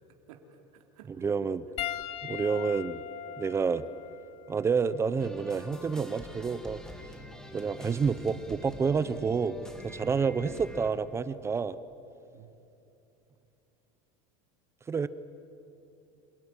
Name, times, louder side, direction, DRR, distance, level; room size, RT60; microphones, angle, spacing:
voice 1, 0.3-1.5 12.3-12.5, right 9 dB, 80° right, 3 dB, 3.3 m, -52 dB
voice 2, 1.2-1.6 2.2-3.0 3.4-3.8 4.5-6.8 7.5-9.6 9.8-11.8 14.9-15.1, right 5 dB, 15° right, 15 dB, 0.6 m, -29 dB
Piano, 1.8-6.4 7.4-7.6 9.5-9.6, left 11 dB, 35° left, 1.1 m, -41 dB
sound 1, 5.2-10.9, equal, 5° left, 1.9 m, -45 dB
27.5 x 17.5 x 10.0 m, 2.8 s
supercardioid pair, 155°, 17 cm